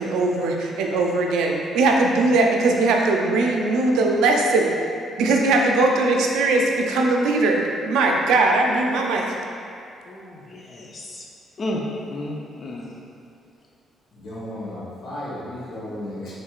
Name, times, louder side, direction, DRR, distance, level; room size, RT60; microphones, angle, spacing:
voice 1, 0.0-4.7 5.2-9.4, right 2 dB, 90° right, 1 dB, 0.4 m, -20 dB
voice 2, 10.1-11.2 11.6-12.9, left 1 dB, 40° left, -2 dB, 0.6 m, -32 dB
voice 3, 14.1-16.4, left 1 dB, 60° left, -8 dB, 1.3 m, -34 dB
4.4 x 3.2 x 2.4 m, 2.6 s
cardioid pair, 90°, 0 cm